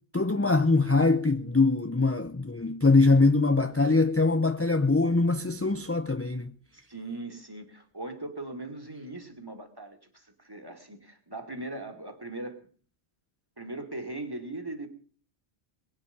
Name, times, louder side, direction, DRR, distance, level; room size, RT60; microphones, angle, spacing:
voice 1, 0.1-6.5, left 3 dB, 15° left, 0.5 m, -23 dB
voice 2, 6.7-12.7 13.6-14.9, right 2 dB, 20° right, 2.6 m, -39 dB
22.5 x 9.8 x 5.3 m
omnidirectional pair, 1.1 m